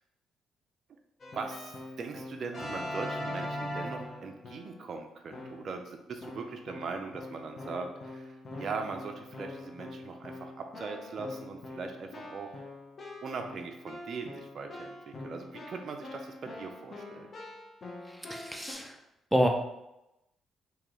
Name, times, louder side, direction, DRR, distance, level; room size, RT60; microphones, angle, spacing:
Keyboard (musical), 1.2-4.9 5.3-5.8 6.2-18.7, left 1 dB, 40° left, 0.9 m, -42 dB
voice 1, 1.3-12.5 13.2-17.3, right 4 dB, 55° right, 4 dB, 0.4 m, -40 dB
voice 2, 18.1-18.9 19.3-19.5, equal, ahead, 2 dB, 0.6 m, -28 dB
3.8 x 3.0 x 3.1 m, 0.89 s
cardioid pair, 90°, 0 cm